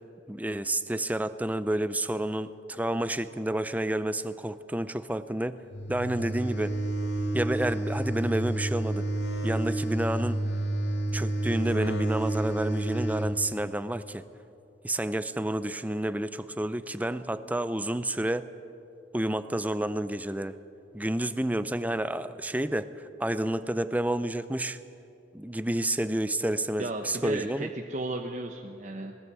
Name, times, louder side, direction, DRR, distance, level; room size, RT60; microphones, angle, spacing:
voice 1, 0.3-5.6 5.9-6.7 7.3-9.1 9.4-10.4 11.1-14.2 14.8-18.5 19.1-20.5 20.9-24.8 25.3-27.7, right 1 dB, 10° right, 13 dB, 0.5 m, -30 dB
sound 1, 5.7-13.3, right 1 dB, 65° left, 2.1 m, -30 dB
voice 2, 26.8-29.2, right 2 dB, 40° right, 3 dB, 1.0 m, -34 dB
20.5 x 19.0 x 8.1 m, 2.7 s
head